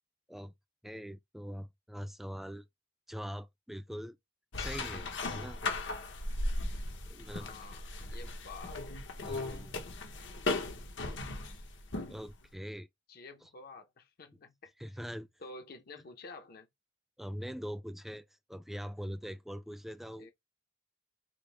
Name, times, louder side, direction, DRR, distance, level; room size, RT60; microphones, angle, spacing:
voice 1, 0.8-2.7 3.1-4.2 4.6-5.6 7.1-7.5 8.1-8.2 9.2-9.7 12.1-12.9 14.8-15.3 17.2-20.3, equal, ahead, 0.4 m, -42 dB
sound 1, 4.5-12.3, left 2 dB, 80° left, 1.0 m, -37 dB
voice 2, 7.3-8.8 13.1-14.7 15.4-16.7 20.2-20.3, left 3 dB, 55° left, 0.7 m, -50 dB
5.0 x 2.1 x 3.2 m
head